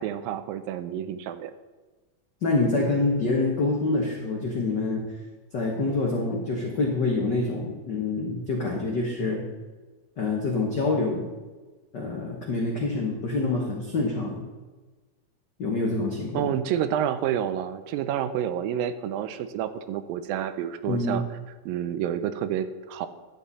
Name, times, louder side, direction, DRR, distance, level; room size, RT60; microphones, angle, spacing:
voice 1, 0.0-1.5 16.3-21.2 21.7-23.1, right 10 dB, 85° right, 11 dB, 2.3 m, -29 dB
voice 2, 2.4-5.0 5.5-9.4 10.2-11.2 11.9-14.4 15.6-16.5 20.9-21.2, left 3 dB, 75° left, -2 dB, 0.9 m, -26 dB
11.5 x 8.4 x 4.1 m, 1.3 s
omnidirectional pair, 4.1 m